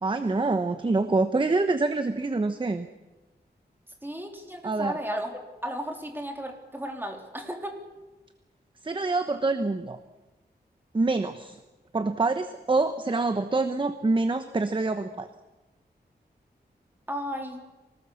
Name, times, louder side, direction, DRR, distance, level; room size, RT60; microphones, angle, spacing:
voice 1, 0.0-2.9 4.6-4.9 8.8-10.0 10.9-11.6 11.9-15.3, right 3 dB, 30° right, 9 dB, 1.0 m, -26 dB
voice 2, 4.0-7.8 17.1-17.6, equal, 10° right, 2 dB, 3.5 m, -34 dB
25.0 x 19.0 x 7.1 m, 1.1 s
wide cardioid pair, 130°, 17 cm